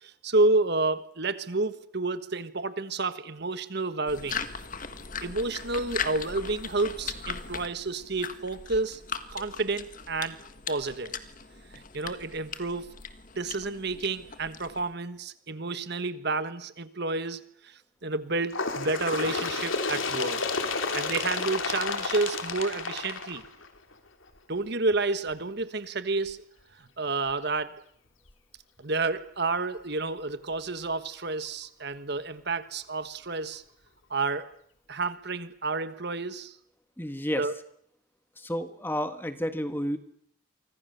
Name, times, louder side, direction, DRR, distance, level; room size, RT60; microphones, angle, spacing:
voice 1, 0.0-4.4 5.2-9.0 9.3-10.4 10.7-11.2 11.7-12.9 13.3-20.4 20.9-23.4 24.5-26.4 26.8-27.8 28.8-33.6 34.1-34.5 34.9-36.5 37.4-37.5, right 3 dB, 50° right, 12 dB, 1.4 m, -30 dB
sound 1, 4.1-14.9, left 6 dB, 40° left, 1.7 m, -39 dB
Bird, 18.5-23.9 24.8-24.9 25.3-25.4 26.3-26.4 27.3-27.4 28.3-28.4, left 4 dB, 70° left, 3.4 m, -31 dB
voice 2, 37.0-37.4 38.4-40.0, equal, 10° left, 9 dB, 1.6 m, -31 dB
29.0 x 25.0 x 6.9 m, 0.66 s
head